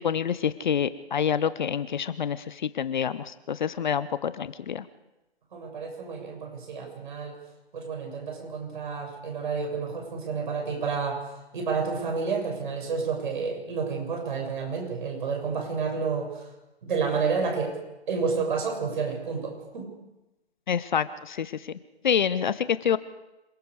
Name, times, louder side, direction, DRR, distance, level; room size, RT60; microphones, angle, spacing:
voice 1, 0.0-4.9 20.7-21.7 22.0-23.0, left 8 dB, 45° left, 15 dB, 0.8 m, -27 dB
voice 2, 5.5-7.3 7.7-16.5 16.8-17.7 18.1-19.9, right 5 dB, 50° right, 2 dB, 7.0 m, -30 dB
27.5 x 20.5 x 4.9 m, 0.98 s
figure-of-eight pair, 140°, 32 cm